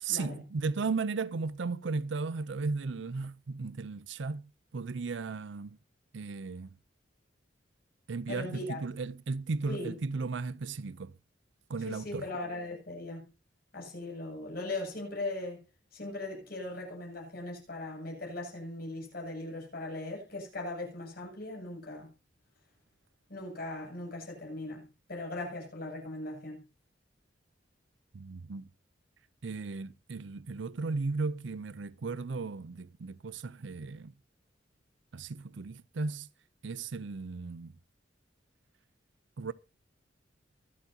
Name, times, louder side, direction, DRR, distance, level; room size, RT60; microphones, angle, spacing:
voice 1, 0.0-4.5 4.7-5.8 6.1-6.7 8.1-11.1 11.7-12.2 28.1-28.7 29.4-34.1 35.1-36.3 36.6-37.7 39.4-39.5, right 4 dB, 70° right, 0.5 m, -35 dB
voice 2, 8.3-8.8 9.7-10.0 11.8-13.3 13.7-15.6 15.9-22.1 23.3-26.6, left 2 dB, 55° left, 7.8 m, -39 dB
24.0 x 8.3 x 2.8 m
head